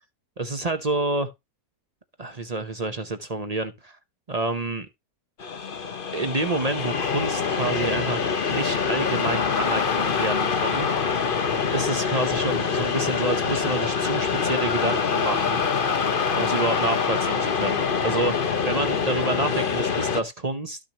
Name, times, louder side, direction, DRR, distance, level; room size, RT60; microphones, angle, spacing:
voice 1, 0.4-1.3 2.2-4.0 4.3-4.9 6.1-10.9 11.7-15.6 16.4-20.8, right 2 dB, 35° right, 0.7 m, -28 dB
sound 1, 5.4-20.2, left 5 dB, 40° left, 1.0 m, -25 dB
13.0 x 6.3 x 2.9 m
omnidirectional pair, 1.7 m